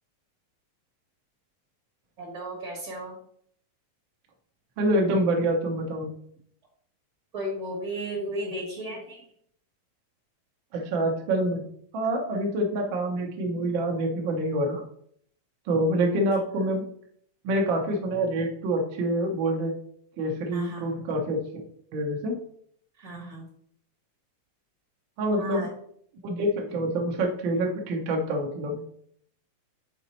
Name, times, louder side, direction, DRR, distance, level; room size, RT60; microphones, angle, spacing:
voice 1, 2.2-3.2 7.3-9.2 20.5-20.9 23.0-23.4 25.4-25.7, right 1 dB, 40° right, -2 dB, 1.0 m, -35 dB
voice 2, 4.8-6.1 10.7-11.7 11.9-14.8 15.7-16.8 17.4-19.8 20.2-21.6 21.9-22.3 25.2-25.7 26.2-28.8, right 1 dB, 75° right, 1 dB, 1.1 m, -26 dB
7.3 x 4.1 x 4.3 m, 0.65 s
omnidirectional pair, 4.0 m